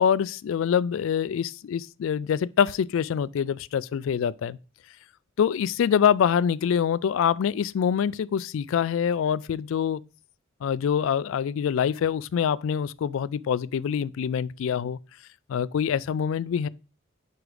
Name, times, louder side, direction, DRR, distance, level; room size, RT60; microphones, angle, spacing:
voice 1, 0.0-4.6 5.4-10.0 10.6-15.0 15.5-16.7, left 8 dB, 75° left, 0.3 m, -25 dB
5.0 x 4.8 x 4.8 m
head